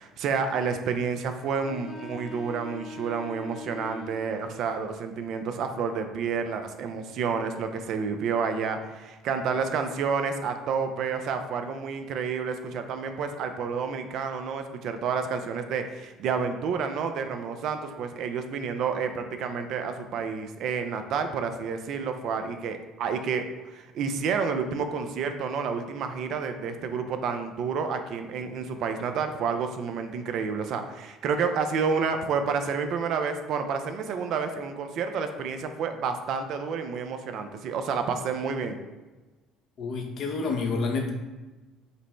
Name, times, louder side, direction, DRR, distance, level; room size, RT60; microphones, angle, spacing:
voice 1, 0.0-38.8, right 5 dB, 65° right, 7 dB, 0.4 m, -30 dB
sound 1, 1.6-4.6, left 3 dB, 25° right, 1.0 m, -42 dB
voice 2, 39.8-41.1, left 4 dB, 60° left, 2 dB, 0.7 m, -28 dB
5.2 x 2.0 x 3.1 m, 1.2 s
hypercardioid pair, 70°, 0 cm